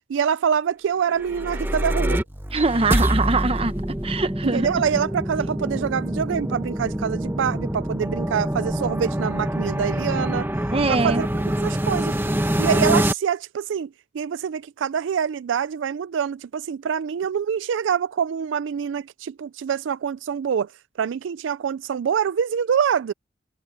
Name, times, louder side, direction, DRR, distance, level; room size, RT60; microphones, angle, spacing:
voice 1, 0.1-2.2 4.4-10.5 10.9-12.2 12.6-13.9 14.1-20.7 21.0-23.1, right 7 dB, 75° right, 0.4 m, -25 dB
sound 1, 1.1-13.1, right 1 dB, 10° right, 1.3 m, -25 dB
voice 2, 2.5-3.7 4.0-4.7 10.7-11.2, right 3 dB, 30° right, 0.9 m, -22 dB
head